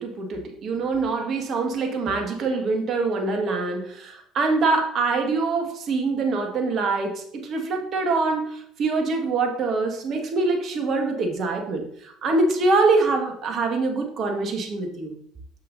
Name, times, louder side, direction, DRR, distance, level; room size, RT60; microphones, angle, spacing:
voice 1, 0.0-15.1, right 3 dB, 50° right, 4 dB, 1.7 m, -24 dB
7.9 x 7.5 x 2.7 m, 0.66 s
hypercardioid pair, 65°, 0 cm